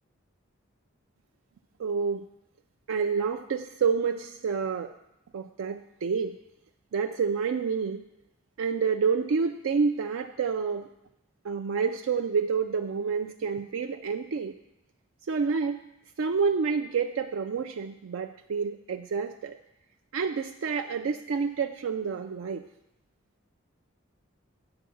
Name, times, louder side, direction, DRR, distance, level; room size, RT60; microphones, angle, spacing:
voice 1, 1.8-2.2 2.9-4.9 5.3-6.4 6.9-8.0 8.6-10.8 11.4-14.5 15.3-15.8 16.2-19.6 20.1-22.7, right 5 dB, 85° right, 6 dB, 0.4 m, -28 dB
9.7 x 4.5 x 7.0 m, 0.86 s
head